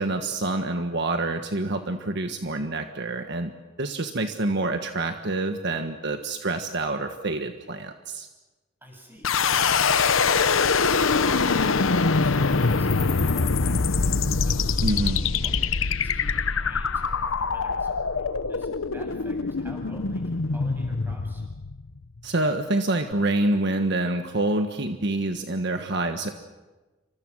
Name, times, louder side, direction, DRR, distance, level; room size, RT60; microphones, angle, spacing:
voice 1, 0.0-3.5 3.8-8.3 14.8-15.2 22.2-26.3, right 2 dB, 60° right, 6 dB, 1.5 m, -27 dB
voice 2, 8.8-9.8 10.1-14.9 15.2-21.4, equal, 10° right, 1 dB, 7.7 m, -47 dB
sound 1, 9.2-22.2, left 4 dB, 85° left, 0.9 m, -24 dB
28.5 x 26.0 x 6.4 m, 1.2 s
head